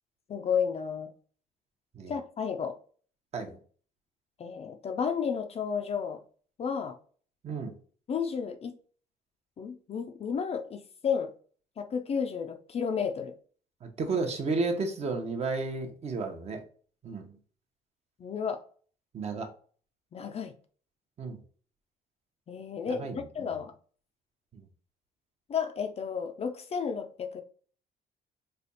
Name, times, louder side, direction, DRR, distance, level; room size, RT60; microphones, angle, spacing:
voice 1, 0.3-1.1 2.1-2.8 4.4-6.2 6.6-7.0 8.1-8.7 9.6-11.3 11.8-13.3 18.2-18.6 20.1-20.5 22.5-23.7 25.5-27.4, left 6 dB, 35° left, 0.5 m, -32 dB
voice 2, 7.4-7.8 13.8-16.6 17.0-17.4 19.1-19.5 21.2-21.4 22.9-23.5 24.5-24.7, right 3 dB, 40° right, 0.9 m, -33 dB
3.3 x 2.3 x 4.0 m
cardioid pair, 110°, 17 cm